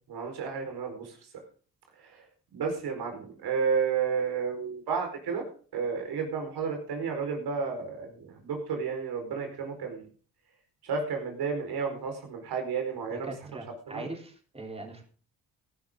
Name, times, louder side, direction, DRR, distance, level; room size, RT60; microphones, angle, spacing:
voice 1, 0.1-1.1 2.0-2.2 2.5-5.4 5.7-10.0 10.8-13.3 13.9-14.0, right 5 dB, 75° right, 4 dB, 4.8 m, -31 dB
voice 2, 13.1-15.0, right 2 dB, 15° right, 1 dB, 3.7 m, -41 dB
17.5 x 11.5 x 3.8 m, 0.41 s
supercardioid pair, 70°, 39 cm